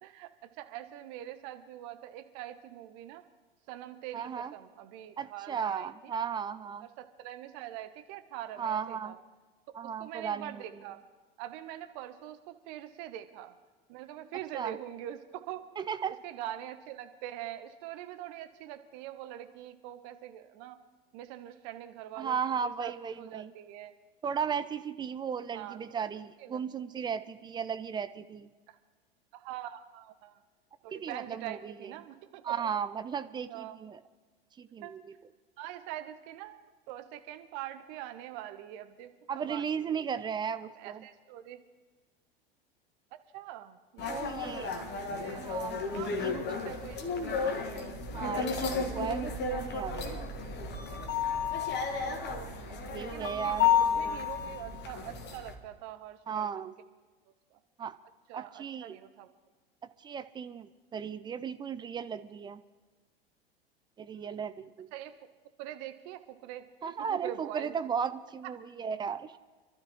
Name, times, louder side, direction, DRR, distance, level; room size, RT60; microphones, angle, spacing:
voice 1, 0.0-3.2 3.7-6.1 6.8-9.2 10.0-11.0 11.4-13.5 13.9-15.6 16.1-20.8 21.1-23.9 25.5-26.1 26.4-26.6 28.7-28.8 29.3-30.4 30.8-32.7 33.5-33.8 34.8-35.0 35.6-40.1 40.6-41.6 43.1-45.5 45.9-46.2 46.5-48.0 52.4-56.7 57.5-57.6 58.3-59.3 64.1-64.3 64.9-65.2 65.6-67.8 68.4-68.5, right 12 dB, 45° right, 10 dB, 1.0 m, -44 dB
voice 2, 4.1-4.5 5.2-6.9 8.6-9.1 9.7-10.6 14.5-14.7 15.8-16.1 22.2-23.5 24.2-28.5 30.9-31.9 32.4-34.0 34.6-35.0 39.3-41.0 44.1-44.7 45.4-45.8 46.2-46.4 48.1-50.2 52.7-53.7 56.3-56.7 57.8-57.9 58.3-59.0 60.0-62.6 64.0-64.9 66.8-69.4, right 7 dB, 15° right, 12 dB, 0.4 m, -35 dB
sound 1, 44.0-55.5, left 6 dB, 35° left, 1.7 m, -32 dB
26.0 x 12.5 x 3.1 m, 1.3 s
figure-of-eight pair, 85°, 30 cm